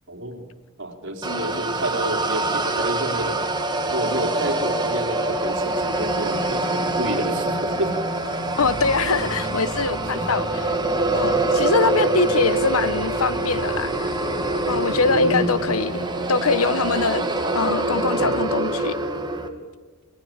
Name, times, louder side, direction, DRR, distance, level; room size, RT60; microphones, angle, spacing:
voice 1, 0.1-0.5 0.8-3.4 3.9-8.0 9.1-9.2 10.0-10.3 15.0-15.6, right 1 dB, 60° right, 4 dB, 3.9 m, -29 dB
voice 2, 1.2-1.6 8.6-10.5 11.1-14.1 14.7-17.3 17.5-18.9, left 4 dB, 75° left, 15 dB, 1.1 m, -23 dB
sound 1, 1.2-19.5, right 2 dB, 20° right, 2.2 m, -25 dB
sound 2, 5.8-18.4, left 1 dB, 50° left, 1.9 m, -36 dB
28.5 x 18.0 x 8.9 m, 1.3 s
head